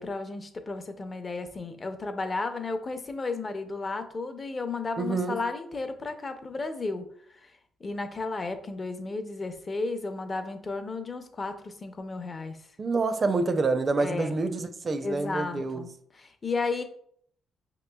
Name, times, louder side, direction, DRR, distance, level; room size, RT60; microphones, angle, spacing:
voice 1, 0.0-7.5 7.8-12.6 14.0-14.4 15.0-16.8, left 3 dB, 35° left, 0.6 m, -33 dB
voice 2, 5.0-5.4 12.8-15.8, right 3 dB, 35° right, 0.4 m, -27 dB
5.4 x 2.9 x 2.2 m
cardioid pair, 90°, 0 cm